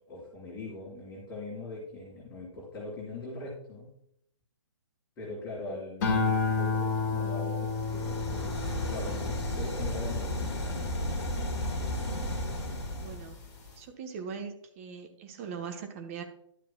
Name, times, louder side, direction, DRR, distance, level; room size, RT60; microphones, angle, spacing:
voice 1, 0.1-3.9 5.2-8.6 8.9-10.4 10.6-10.8 12.7-12.8, left 2 dB, 20° left, -9 dB, 3.5 m, -41 dB
sound 1, 6.0-12.5 13.0-13.5, left 4 dB, 40° left, 2.0 m, -32 dB
sound 2, 7.6-13.3, left 1 dB, 55° left, 1.7 m, -33 dB
voice 2, 8.8-9.1 13.0-13.4 13.8-16.2, right 6 dB, 25° right, 5 dB, 0.9 m, -41 dB
12.0 x 7.3 x 2.2 m, 0.71 s
figure-of-eight pair, 135°, 16 cm